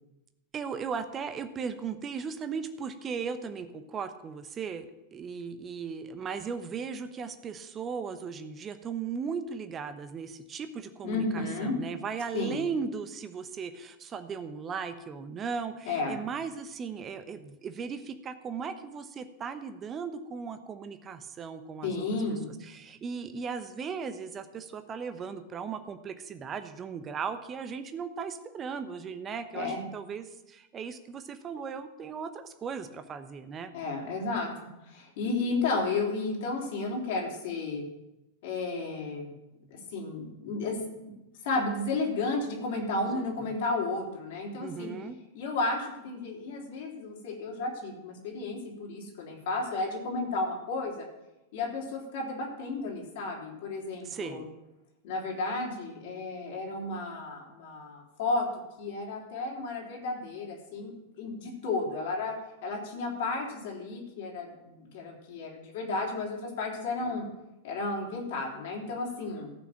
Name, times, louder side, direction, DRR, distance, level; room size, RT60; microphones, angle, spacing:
voice 1, 0.5-22.0 22.3-33.7 43.1-43.3 44.6-45.2 54.0-54.5, right 6 dB, 25° right, 9 dB, 0.9 m, -37 dB
voice 2, 11.0-11.8 12.3-12.6 15.9-16.2 21.8-22.5 29.5-29.8 33.7-34.5 34.9-37.8 38.4-39.3 39.7-40.8 41.4-44.9 45.3-51.1 51.5-54.4 55.0-58.5 58.8-62.4 62.6-67.2 67.6-69.5, left 3 dB, 55° left, -1 dB, 3.5 m, -33 dB
14.0 x 6.1 x 7.4 m, 0.94 s
figure-of-eight pair, 90°, 0 cm